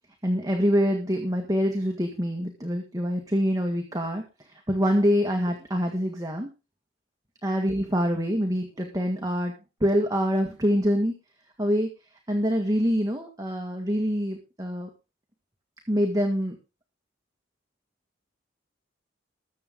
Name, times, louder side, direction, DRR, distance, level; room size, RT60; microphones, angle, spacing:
voice 1, 0.2-4.2 4.7-6.5 7.4-9.5 9.8-11.1 11.6-11.9 12.3-14.9 15.9-16.5, equal, 20° right, 2 dB, 1.8 m, -25 dB
21.0 x 7.8 x 3.8 m, 0.30 s
head